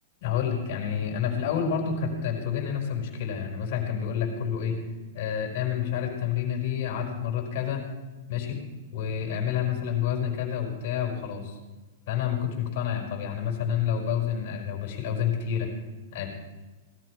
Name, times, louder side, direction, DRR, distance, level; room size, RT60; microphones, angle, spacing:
voice 1, 0.2-4.8 5.1-7.9 8.3-8.6 8.9-11.6 12.1-15.7 16.1-16.3, left 8 dB, 55° left, 1 dB, 4.8 m, -29 dB
18.0 x 13.0 x 4.7 m, 1.2 s
hypercardioid pair, 140°, 0 cm